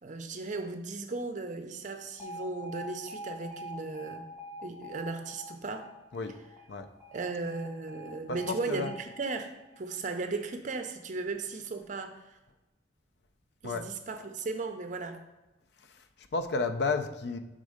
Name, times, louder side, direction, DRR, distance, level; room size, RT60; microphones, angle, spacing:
voice 1, 0.0-4.2 4.6-5.9 7.1-12.2 13.6-15.2, right 3 dB, 40° right, 6 dB, 0.5 m, -36 dB
Alarm, 2.2-10.2, equal, 15° right, 0.9 m, -45 dB
voice 2, 8.3-8.9 13.6-13.9 15.8-17.4, left 4 dB, 65° left, 9 dB, 0.5 m, -32 dB
5.3 x 3.7 x 4.9 m, 1.0 s
head